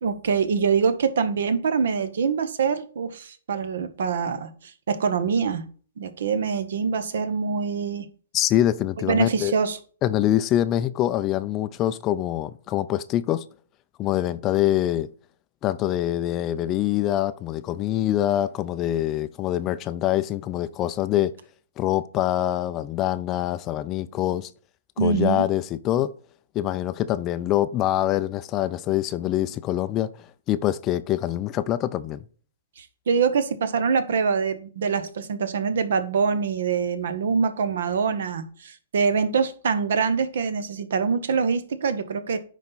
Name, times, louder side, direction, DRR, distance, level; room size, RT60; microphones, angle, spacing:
voice 1, 0.0-4.5 4.9-5.7 6.0-8.1 9.1-9.8 25.0-25.5 32.8-42.4, right 5 dB, 65° right, 0.9 m, -24 dB
voice 2, 8.3-9.5 10.0-13.4 14.0-15.1 15.6-21.3 21.8-24.5 25.0-26.1 26.5-32.2, left 12 dB, 25° left, 0.4 m, -24 dB
9.6 x 4.1 x 4.0 m
hypercardioid pair, 135°, 0 cm